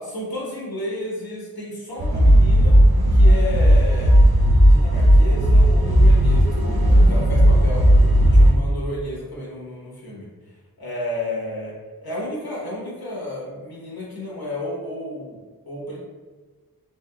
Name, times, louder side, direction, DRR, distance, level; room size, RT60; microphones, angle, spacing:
voice 1, 0.0-2.8 3.1-4.2 4.6-7.9 8.2-10.3 10.8-11.7 12.0-16.0, left 1 dB, 75° left, -4 dB, 1.3 m, -32 dB
sound 1, 2.0-8.5, equal, 75° right, 0.8 m, -14 dB
3.8 x 3.4 x 2.3 m, 1.4 s
wide cardioid pair, 75°, 37 cm